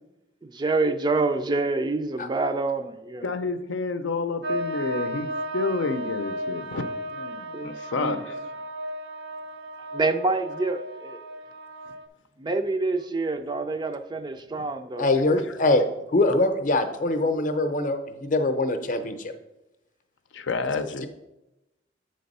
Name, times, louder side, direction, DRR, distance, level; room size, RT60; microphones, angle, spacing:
voice 1, 0.4-3.3 7.5-8.2 9.9-11.2 12.4-15.1, right 3 dB, 25° right, 0.4 m, -27 dB
voice 2, 3.2-6.8 7.1-8.4 20.3-21.1, left 4 dB, 85° left, 0.5 m, -29 dB
sound 1, 4.4-12.1, right 1 dB, 70° right, 0.6 m, -34 dB
voice 3, 15.0-15.8 16.1-19.3, left 2 dB, 45° left, 0.7 m, -23 dB
7.7 x 3.4 x 5.3 m
head